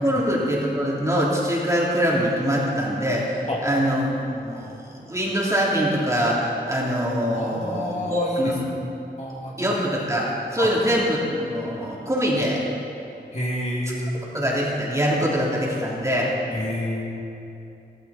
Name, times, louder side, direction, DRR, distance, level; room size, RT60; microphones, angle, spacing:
voice 1, 0.0-8.7 9.2-9.3 9.6-12.6 14.3-16.3, equal, 15° right, -5 dB, 3.2 m, -24 dB
voice 2, 7.3-8.4 9.2-9.7 10.6-10.7 13.3-14.3 16.5-17.2, left 1 dB, 40° left, -3 dB, 2.5 m, -29 dB
16.0 x 16.0 x 4.2 m, 2.7 s
wide cardioid pair, 110°, 18 cm